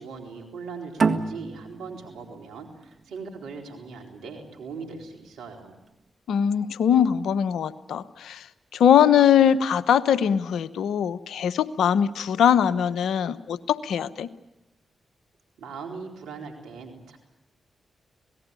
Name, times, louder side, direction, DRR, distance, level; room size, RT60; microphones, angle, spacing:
voice 1, 0.0-5.8 15.6-17.2, right 4 dB, 85° right, 3 dB, 4.1 m, -40 dB
sound 1, 1.0-4.2, right 4 dB, 60° right, 1.7 m, -28 dB
voice 2, 6.3-8.5 8.7-14.3, left 8 dB, 80° left, 15 dB, 0.9 m, -21 dB
27.0 x 18.5 x 8.4 m, 0.94 s
supercardioid pair, 40°, 0 cm